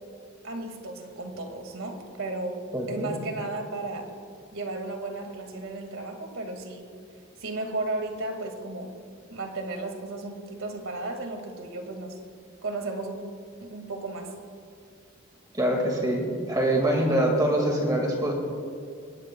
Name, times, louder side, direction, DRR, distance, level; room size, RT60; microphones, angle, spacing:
voice 1, 0.4-2.6 2.9-4.1 4.5-6.9 7.4-8.9 9.3-12.2 12.6-13.3 13.6-14.3, right 2 dB, 85° right, 4 dB, 2.0 m, -34 dB
voice 2, 2.7-3.2 15.5-18.3, right 1 dB, 20° right, 0 dB, 1.9 m, -24 dB
23.0 x 19.5 x 2.3 m, 2.4 s
head